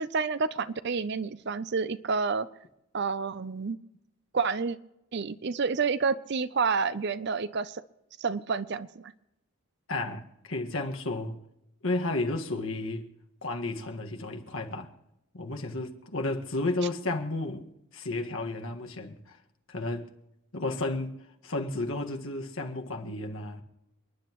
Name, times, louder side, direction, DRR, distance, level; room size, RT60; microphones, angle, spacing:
voice 1, 0.0-2.5 2.9-3.8 4.3-4.8 5.1-7.8 8.2-9.1, right 5 dB, 50° right, 0.5 m, -29 dB
voice 2, 9.9-11.4 11.8-13.1 13.4-14.9 15.3-19.4 19.7-20.1 20.5-21.1 21.4-23.6, left 2 dB, 65° left, 1.7 m, -32 dB
29.5 x 10.5 x 3.1 m
head